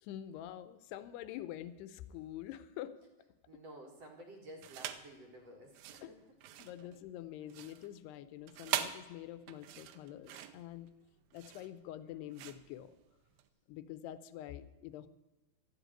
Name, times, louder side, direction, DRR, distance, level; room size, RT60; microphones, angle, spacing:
voice 1, 0.0-2.9 3.5-3.6 6.0-6.1 6.6-10.9 11.3-12.9 13.7-15.1, left 12 dB, 80° left, 13 dB, 2.7 m, -46 dB
voice 2, 3.5-6.2, right 1 dB, 50° right, 0 dB, 2.5 m, -52 dB
sound 1, 4.6-5.1 5.7-13.5, right 11 dB, 85° right, 2.7 m, -43 dB
13.0 x 8.2 x 9.0 m, 1.1 s
omnidirectional pair, 4.8 m